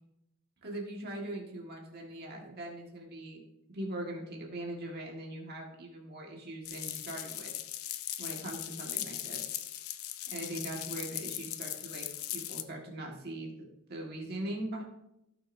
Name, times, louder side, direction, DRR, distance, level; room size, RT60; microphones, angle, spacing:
voice 1, 0.6-3.4 3.7-7.5 8.2-9.6 10.3-13.5 13.9-14.8, right 1 dB, 45° right, -1 dB, 1.8 m, -41 dB
sound 1, 6.7-12.6, left 13 dB, 70° left, 0.6 m, -39 dB
16.0 x 6.4 x 2.7 m, 0.86 s
head